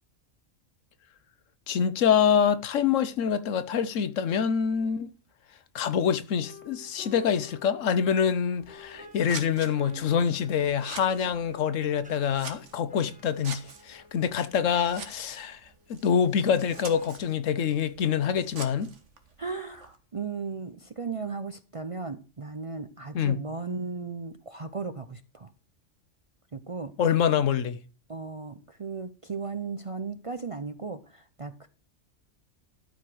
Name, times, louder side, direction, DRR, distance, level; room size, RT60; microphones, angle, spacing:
voice 1, 1.7-5.1 5.7-15.6 15.9-18.9 23.1-23.4 27.0-27.8, left 7 dB, 80° left, 1.2 m, -26 dB
sound 1, 6.4-17.1, left 2 dB, 5° right, 1.4 m, -52 dB
Scissors, 8.5-20.0, right 5 dB, 70° right, 1.7 m, -46 dB
voice 2, 19.4-25.5 26.5-26.9 28.1-31.7, right 4 dB, 40° right, 0.5 m, -36 dB
12.0 x 4.9 x 6.1 m
omnidirectional pair, 1.3 m